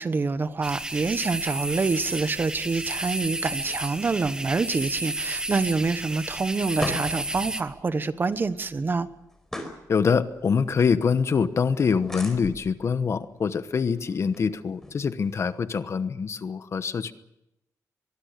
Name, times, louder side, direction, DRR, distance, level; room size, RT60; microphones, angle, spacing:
voice 1, 0.0-9.1, right 4 dB, 35° right, 12 dB, 1.2 m, -26 dB
sound 1, 0.6-7.6, right 1 dB, 15° right, 1.4 m, -32 dB
sound 2, 4.5-15.7, left 1 dB, 5° left, 4.5 m, -41 dB
voice 2, 9.9-17.1, left 6 dB, 45° left, 12 dB, 1.1 m, -25 dB
24.0 x 22.0 x 6.7 m, 0.86 s
wide cardioid pair, 140°, 6 cm